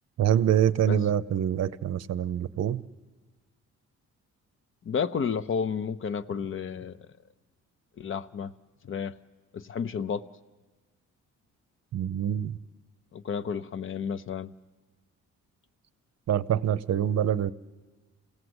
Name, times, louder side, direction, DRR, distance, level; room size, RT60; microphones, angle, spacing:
voice 1, 0.2-2.8 11.9-12.6 16.3-17.5, right 10 dB, 60° right, 13 dB, 0.7 m, -25 dB
voice 2, 4.8-7.0 8.0-8.5 8.8-9.1 9.5-10.2 13.1-14.5, left 6 dB, 45° left, 12 dB, 0.7 m, -31 dB
26.5 x 17.0 x 8.0 m, 1.3 s
cardioid pair, 90°, 30 cm